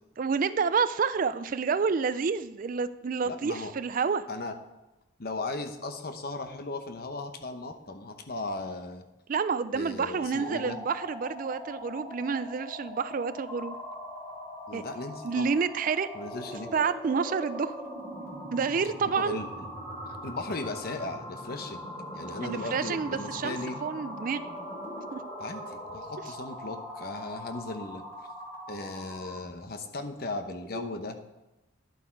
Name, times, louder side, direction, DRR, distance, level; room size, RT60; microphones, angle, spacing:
voice 1, 0.2-4.2 9.3-13.8 14.7-14.8 15.2-16.1 16.7-17.8 18.5-19.4 22.4-24.4 25.1-25.2 30.7-30.9, right 5 dB, 45° right, 14 dB, 0.4 m, -29 dB
voice 2, 3.2-3.7 4.3-4.6 5.2-9.0 9.7-10.8 14.7-15.5 16.1-16.7 19.2-19.7 20.2-23.8 25.4-28.0 28.7-31.2, left 2 dB, 50° left, 7 dB, 0.9 m, -37 dB
sound 1, 10.2-29.5, equal, 15° left, 2.6 m, -41 dB
11.0 x 7.9 x 4.6 m, 1.0 s
head